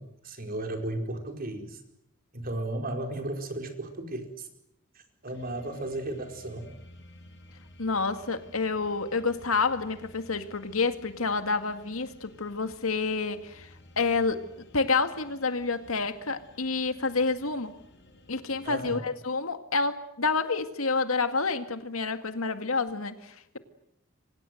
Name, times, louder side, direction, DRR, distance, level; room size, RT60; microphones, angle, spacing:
voice 1, 0.0-1.8 2.3-4.5 4.9-6.7 18.6-19.0, right 1 dB, 45° right, 5 dB, 4.8 m, -35 dB
sound 1, 5.3-19.0, left 1 dB, 55° left, 7.9 m, -54 dB
voice 2, 7.8-14.5 14.7-17.7 18.3-23.6, left 4 dB, 85° left, 9 dB, 2.0 m, -29 dB
27.5 x 25.0 x 7.9 m, 0.78 s
head